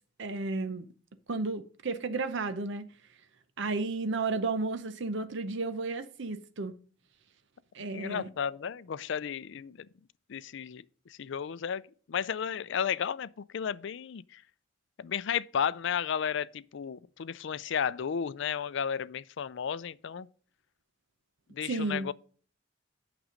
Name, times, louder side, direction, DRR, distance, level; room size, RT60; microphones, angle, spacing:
voice 1, 0.2-0.8 1.3-2.9 3.6-6.7 7.7-8.3 21.6-22.1, right 3 dB, 65° right, 0.8 m, -33 dB
voice 2, 7.9-9.8 10.3-10.8 11.1-11.8 12.1-14.4 15.0-20.3 21.5-22.1, left 7 dB, 65° left, 0.4 m, -33 dB
9.0 x 6.2 x 5.2 m
head